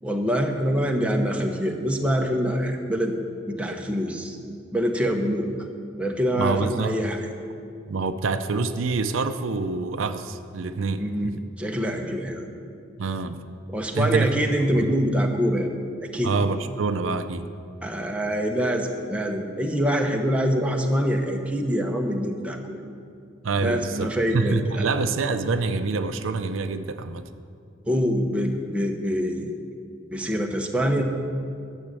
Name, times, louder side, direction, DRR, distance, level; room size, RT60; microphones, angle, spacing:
voice 1, 0.0-3.1 3.5-4.4 4.7-5.5 6.0-7.2 11.0-12.5 13.7-15.7 16.0-16.3 17.8-22.8 23.6-24.8 27.8-29.5 30.1-31.0, equal, 5° right, 1 dB, 1.0 m, -25 dB
voice 2, 6.4-7.0 7.9-11.3 13.0-13.4 13.9-14.3 14.8-14.9 16.2-17.5 23.4-27.2, right 4 dB, 75° right, 9 dB, 0.5 m, -26 dB
12.0 x 7.3 x 7.6 m, 2.4 s
head